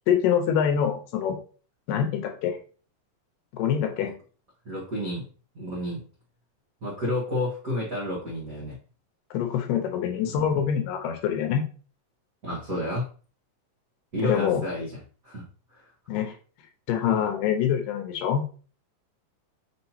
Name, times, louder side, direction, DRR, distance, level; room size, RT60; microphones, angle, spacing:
voice 1, 0.1-1.4 1.9-2.6 3.5-4.1 9.3-11.6 14.2-14.6 16.1-16.3 16.9-18.4, left 8 dB, 80° left, 5 dB, 2.3 m, -25 dB
voice 2, 4.6-5.3 5.5-6.0 6.8-8.8 10.2-10.3 12.4-13.1 14.1-14.9 15.2-15.4 15.7-15.8 17.1-17.2, left 1 dB, 80° right, -7 dB, 0.7 m, -30 dB
6.2 x 2.9 x 2.8 m, 0.39 s
omnidirectional pair, 4.0 m